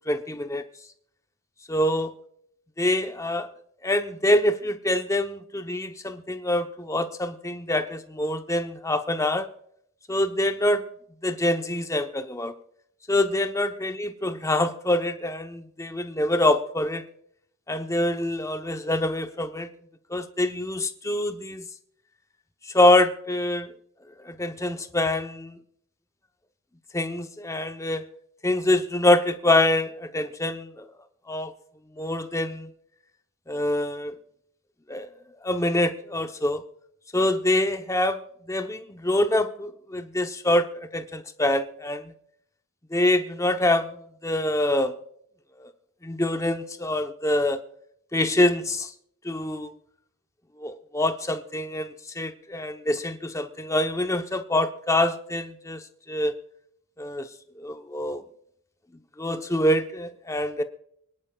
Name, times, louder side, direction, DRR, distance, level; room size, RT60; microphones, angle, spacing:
voice 1, 0.1-0.6 1.7-2.1 2.8-3.5 3.8-9.5 10.1-10.8 11.2-12.5 13.1-17.1 17.7-19.7 20.1-21.6 22.6-23.7 24.2-25.6 26.9-28.1 28.4-30.9 31.3-31.5 31.9-32.7 33.5-34.2 34.9-35.1 35.4-36.6 37.1-38.2 38.5-42.1 42.9-44.9 45.6-45.7 46.0-47.6 48.1-48.9 49.2-49.7 50.6-56.3 57.0-57.3 57.6-58.2 59.2-60.6, left 1 dB, 15° left, 8 dB, 0.8 m, -25 dB
25.5 x 11.0 x 2.3 m, 0.70 s
head